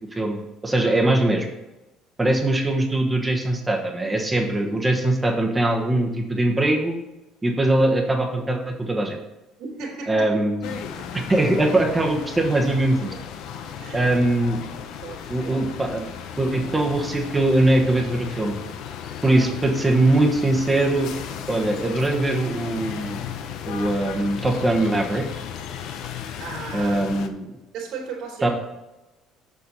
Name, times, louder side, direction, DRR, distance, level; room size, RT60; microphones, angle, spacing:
voice 1, 0.1-1.5 2.2-6.9 7.4-9.2 10.1-10.7 11.3-13.1 13.9-14.6 15.3-16.1 16.4-18.5 19.2-21.1 21.5-23.2 23.7-25.2 26.7-27.4 28.4-28.5, right 2 dB, 15° right, 2 dB, 1.1 m, -21 dB
voice 2, 9.6-10.3 13.8-14.1 15.0-15.5 19.3-19.5 26.4-27.0 27.7-28.5, right 5 dB, 70° right, -1 dB, 2.7 m, -36 dB
sound 1, 10.6-27.3, left 8 dB, 65° left, 0.7 m, -35 dB
7.2 x 6.1 x 4.1 m, 1.0 s
cardioid pair, 125°, 0 cm